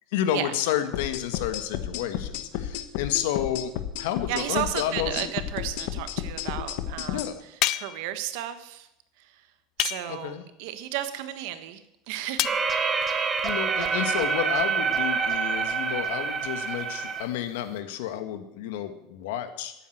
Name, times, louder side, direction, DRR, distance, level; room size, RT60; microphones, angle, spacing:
voice 1, 0.1-5.3 7.1-7.4 10.1-10.4 13.2-19.7, left 10 dB, 80° left, 9 dB, 1.6 m, -30 dB
sound 1, 0.9-7.3, left 10 dB, 65° left, 1.2 m, -32 dB
voice 2, 4.3-8.9 9.2-9.4 9.8-12.6, right 12 dB, 65° right, 11 dB, 1.4 m, -34 dB
sound 2, 7.6-8.1 9.8-10.3 12.4-12.6, left 16 dB, 45° left, 0.4 m, -28 dB
sound 3, 12.4-17.2, right 5 dB, 20° right, 1.2 m, -27 dB
13.0 x 9.2 x 7.9 m, 0.85 s
cardioid pair, 160°, 0 cm